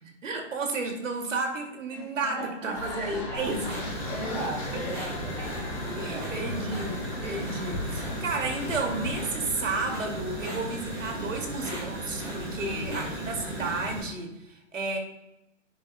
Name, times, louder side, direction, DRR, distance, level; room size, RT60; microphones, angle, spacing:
voice 1, 0.0-3.6 5.4-5.5 6.0-7.0 7.2-15.0, right 3 dB, 80° right, 2 dB, 2.2 m, -32 dB
voice 2, 1.9-5.5 5.8-6.8 12.6-13.3, equal, ahead, -11 dB, 1.0 m, -38 dB
sound 1, 2.7-9.2, left 2 dB, 25° left, 2.1 m, -37 dB
sound 2, 3.3-14.0, right 1 dB, 15° right, 1.8 m, -36 dB
10.0 x 6.7 x 2.2 m, 0.87 s
hypercardioid pair, 180°, 38 cm